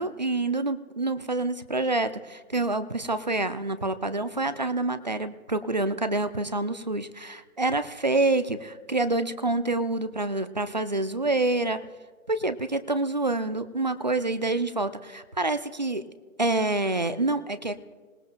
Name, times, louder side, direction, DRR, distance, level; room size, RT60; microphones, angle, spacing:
voice 1, 0.0-11.8 12.3-16.0 16.4-17.8, right 2 dB, 30° right, 13 dB, 0.5 m, -27 dB
26.0 x 17.5 x 2.2 m, 1.5 s
figure-of-eight pair, 155°, 43 cm